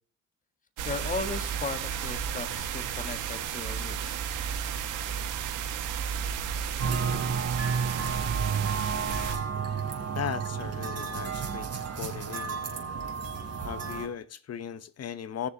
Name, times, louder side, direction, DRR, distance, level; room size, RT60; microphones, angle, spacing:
voice 1, 0.8-4.2, left 4 dB, 25° left, 1.6 m, -36 dB
sound 1, 0.8-9.4, right 8 dB, 90° right, 1.7 m, -33 dB
sound 2, 6.8-14.1, right 6 dB, 55° right, 3.1 m, -31 dB
voice 2, 10.1-12.6 13.6-15.5, left 8 dB, 55° left, 1.0 m, -37 dB
18.5 x 6.9 x 2.9 m
cardioid pair, 90°, 30 cm